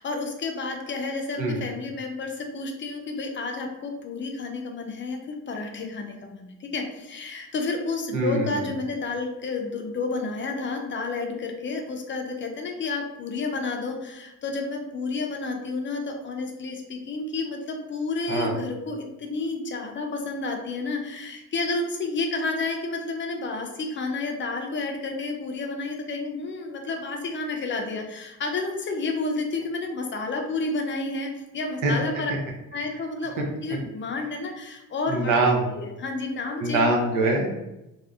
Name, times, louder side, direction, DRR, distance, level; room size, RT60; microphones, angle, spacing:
voice 1, 0.0-32.3 32.7-35.4 35.7-36.9, left 3 dB, 40° left, 3 dB, 0.4 m, -30 dB
voice 2, 8.1-8.6 18.3-18.5 31.8-31.9 35.1-35.7 36.6-37.5, right 2 dB, 85° right, 0 dB, 0.7 m, -23 dB
2.5 x 2.1 x 2.3 m, 0.93 s
cardioid pair, 90°, 30 cm